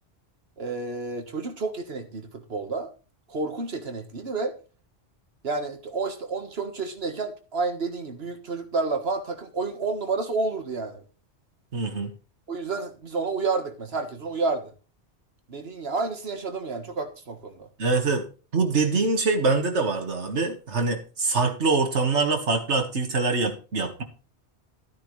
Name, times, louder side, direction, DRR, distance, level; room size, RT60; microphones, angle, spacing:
voice 1, 0.6-2.9 3.3-4.5 5.4-11.0 12.5-14.6 15.5-17.7, right 3 dB, 65° right, 6 dB, 1.7 m, -30 dB
voice 2, 11.7-12.1 17.8-18.2 18.5-24.0, right 3 dB, 90° right, 5 dB, 2.0 m, -24 dB
13.0 x 9.4 x 3.2 m, 0.35 s
omnidirectional pair, 1.1 m